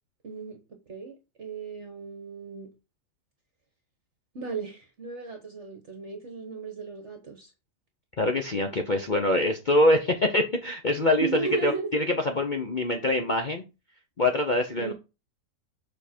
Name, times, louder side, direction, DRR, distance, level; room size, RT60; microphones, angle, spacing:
voice 1, 0.2-2.7 4.3-7.5 11.2-11.9 13.0-13.1 14.8-14.9, right 4 dB, 45° right, 1.3 m, -36 dB
voice 2, 8.2-11.3 11.6-13.6 14.2-14.9, left 1 dB, 40° left, 0.7 m, -24 dB
7.1 x 4.7 x 4.3 m
omnidirectional pair, 1.7 m